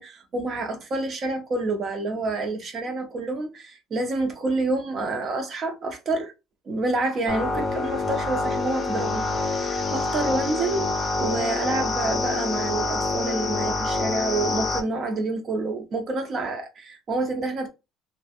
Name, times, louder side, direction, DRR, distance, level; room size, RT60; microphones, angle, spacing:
voice 1, 0.0-6.3 6.7-10.9 11.2-17.7, right 2 dB, 35° right, 0.7 m, -28 dB
sound 1, 7.3-14.8, left 3 dB, 25° left, 0.6 m, -26 dB
3.2 x 2.2 x 2.4 m
cardioid pair, 150°, 0 cm